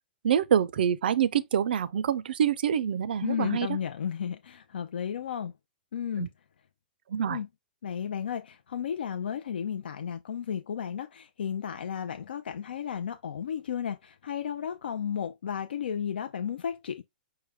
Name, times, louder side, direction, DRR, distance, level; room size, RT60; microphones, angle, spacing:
voice 1, 0.2-3.7 6.2-6.3 7.1-7.4, right 9 dB, 75° right, 0.3 m, -26 dB
voice 2, 3.2-5.5 5.9-6.3 7.3-7.5 7.8-17.0, left 8 dB, 90° left, 0.4 m, -33 dB
4.7 x 2.2 x 3.4 m
hypercardioid pair, 150°, 5 cm